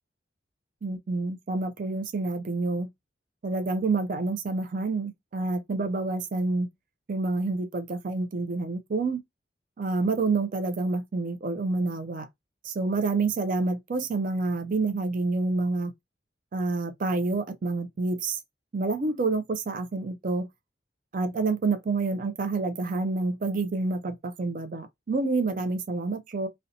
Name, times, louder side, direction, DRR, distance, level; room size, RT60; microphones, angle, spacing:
voice 1, 0.8-2.9 3.4-6.7 7.1-9.2 9.8-12.3 12.6-15.9 16.5-18.4 18.7-20.5 21.1-26.5, right 3 dB, 45° right, 0.4 m, -28 dB
2.5 x 2.1 x 2.6 m
head